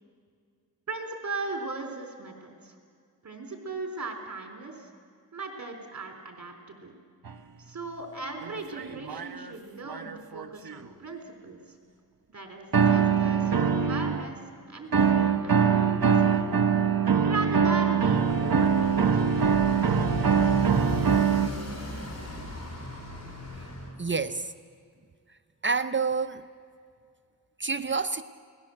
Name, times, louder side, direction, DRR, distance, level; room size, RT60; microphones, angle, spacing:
voice 1, 0.9-2.8 3.2-4.9 5.3-6.9 7.6-11.8 12.3-13.5 13.8-14.4 14.7-16.5 17.2-20.2, right 3 dB, 50° right, 4 dB, 3.8 m, -38 dB
sound 1, 7.3-7.4 8.4-9.5 9.9-10.9 12.7-14.3 14.9-21.5, right 6 dB, 70° right, 1.3 m, -23 dB
Motorcycle, 17.9-23.9, left 1 dB, 45° left, 5.0 m, -36 dB
voice 2, 24.0-24.5 25.6-26.4 27.6-28.2, right 4 dB, 30° right, 10 dB, 0.7 m, -28 dB
29.0 x 19.0 x 7.8 m, 2.2 s
wide cardioid pair, 105°, 36 cm